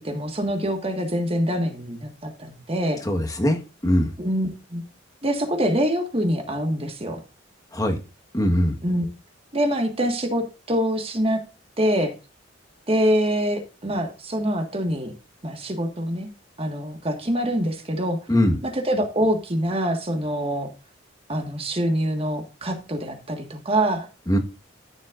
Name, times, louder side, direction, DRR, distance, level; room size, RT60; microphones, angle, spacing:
voice 1, 0.0-3.0 4.2-4.8 5.2-7.2 8.8-9.1 9.5-11.4 11.8-12.1 12.9-15.1 15.4-16.3 16.6-18.2 18.6-20.7 21.3-24.1, equal, 30° right, 4 dB, 1.7 m, -25 dB
voice 2, 3.0-4.1 7.7-8.0 8.3-8.8 18.3-18.6 24.3-24.4, left 1 dB, 20° left, 5 dB, 1.4 m, -21 dB
13.5 x 7.5 x 2.5 m, 0.30 s
head